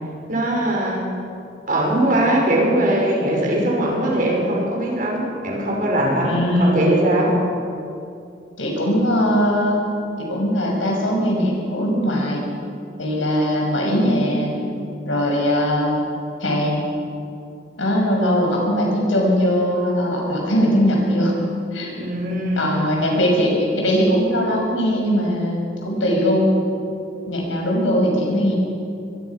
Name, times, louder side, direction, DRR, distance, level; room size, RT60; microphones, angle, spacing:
voice 1, 0.3-1.1 1.7-7.4 22.0-22.8, right 1 dB, 45° right, -2 dB, 5.8 m, -20 dB
voice 2, 6.2-6.8 8.6-9.8 10.2-12.4 13.0-14.5 15.0-16.0 16.4-16.8 17.8-21.3 21.7-21.9 22.6-26.5 27.3-28.5, equal, 85° left, -1 dB, 6.3 m, -20 dB
24.0 x 22.0 x 6.1 m, 2.6 s
head